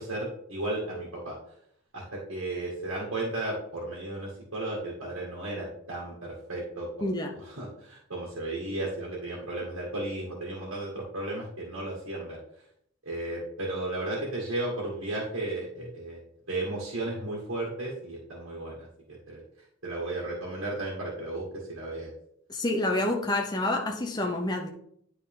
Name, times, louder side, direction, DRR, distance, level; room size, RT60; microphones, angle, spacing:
voice 1, 0.0-1.3 1.9-7.1 7.4-12.4 13.0-16.2 16.5-19.4 19.8-22.1, right 2 dB, 70° right, 2.1 m, -34 dB
voice 2, 7.0-7.4 22.5-24.7, left 1 dB, 20° left, 0.7 m, -28 dB
11.5 x 4.3 x 3.7 m
head